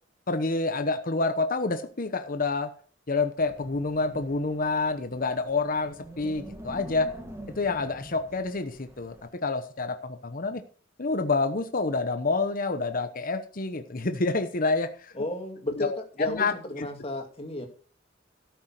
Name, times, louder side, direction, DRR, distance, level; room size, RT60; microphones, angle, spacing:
voice 1, 0.3-2.7 3.1-7.1 7.6-9.1 9.4-10.6 11.0-15.1 15.8-16.9, left 3 dB, 45° left, 8 dB, 1.0 m, -28 dB
Wind, 3.4-9.3, equal, 15° right, 1.8 m, -46 dB
voice 2, 15.1-15.9 16.2-17.7, left 1 dB, 30° left, 3 dB, 2.3 m, -33 dB
13.0 x 7.1 x 6.0 m, 0.42 s
head